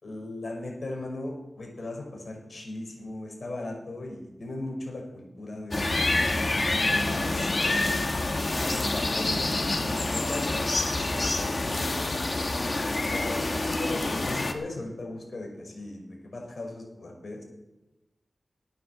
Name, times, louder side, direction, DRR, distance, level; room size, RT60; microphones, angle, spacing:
voice 1, 0.0-5.9 6.8-7.9 8.5-10.7 11.0-12.2 13.1-17.4, left 2 dB, 60° left, 0 dB, 5.5 m, -38 dB
sound 1, 5.7-14.5, left 2 dB, 45° left, 1.7 m, -27 dB
15.0 x 9.2 x 7.5 m, 1.0 s
wide cardioid pair, 65°, 0 cm